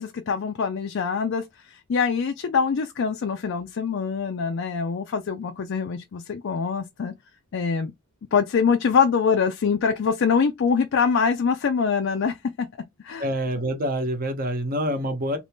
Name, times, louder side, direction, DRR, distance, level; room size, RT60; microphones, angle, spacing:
voice 1, 0.0-7.1 7.5-7.9 8.3-12.7 13.0-13.3, left 6 dB, 55° left, 0.4 m, -24 dB
voice 2, 13.2-15.4, equal, 40° right, 0.8 m, -26 dB
2.8 x 2.6 x 3.5 m
head